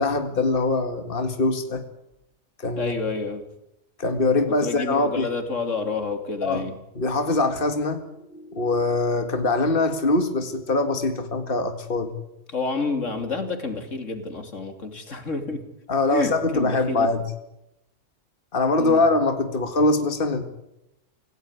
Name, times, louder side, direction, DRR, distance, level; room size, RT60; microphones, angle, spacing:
voice 1, 0.0-1.8 2.6-2.9 4.0-5.3 6.4-6.7 7.0-12.1 15.9-17.2 18.5-20.4, left 2 dB, 45° left, 7 dB, 2.1 m, -23 dB
voice 2, 2.8-3.5 4.6-6.8 12.5-15.6 16.1-17.1 18.8-19.0, left 4 dB, 80° left, 7 dB, 3.2 m, -29 dB
26.5 x 17.0 x 9.7 m, 0.85 s
omnidirectional pair, 1.3 m